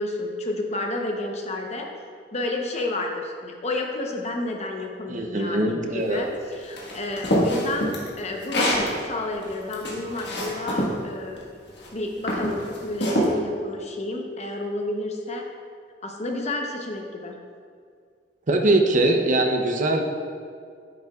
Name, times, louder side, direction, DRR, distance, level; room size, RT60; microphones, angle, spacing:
voice 1, 0.0-1.9 2.3-7.9 8.2-11.4 11.9-15.4 16.0-17.4, left 2 dB, 40° left, 1 dB, 0.9 m, -30 dB
voice 2, 5.1-6.3 18.5-20.0, right 2 dB, 45° right, 3 dB, 0.7 m, -22 dB
sound 1, 6.8-8.9 9.4-10.9 11.7-11.9 12.3-13.3, equal, 75° left, 1.6 m, -25 dB
9.1 x 7.9 x 2.4 m, 2.2 s
head